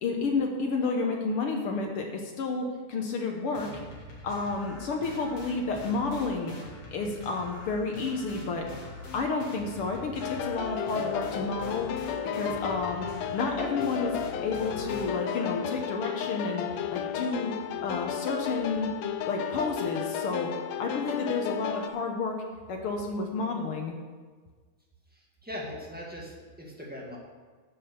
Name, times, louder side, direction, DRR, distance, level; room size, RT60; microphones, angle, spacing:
voice 1, 0.0-3.7 4.2-6.5 6.9-8.7 9.1-11.9 12.3-16.6 16.9-18.9 19.2-20.5 20.8-22.4 22.7-24.0, left 4 dB, 70° left, 2 dB, 1.4 m, -31 dB
sound 1, 3.5-15.6, equal, 45° left, 3.1 m, -44 dB
sound 2, 10.2-21.9, left 8 dB, 90° left, 1.5 m, -33 dB
voice 2, 25.1-27.2, left 1 dB, 5° right, -3 dB, 0.7 m, -40 dB
11.0 x 6.1 x 6.8 m, 1.5 s
omnidirectional pair, 3.7 m